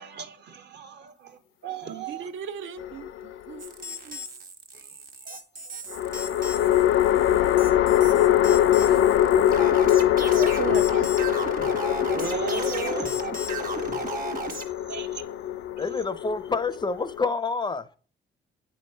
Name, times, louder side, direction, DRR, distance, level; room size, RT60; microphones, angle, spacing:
voice 1, 0.0-2.3 5.3-5.6 6.1-6.4 7.7-7.8 8.3-8.6 9.1-9.2 10.1-10.3 11.6-13.6 14.9-15.3, right 6 dB, 60° right, 1.1 m, -37 dB
voice 2, 1.9-4.2 10.1-11.1 12.8-12.9, right 7 dB, 75° right, 0.6 m, -36 dB
sound 1, 2.8-3.7 5.9-17.3, left 11 dB, 85° left, 0.5 m, -23 dB
sound 2, 3.6-14.6, right 3 dB, 45° right, 1.3 m, -36 dB
voice 3, 15.8-18.0, left 4 dB, 20° left, 0.4 m, -28 dB
9.1 x 3.1 x 5.4 m
cardioid pair, 90°, 20 cm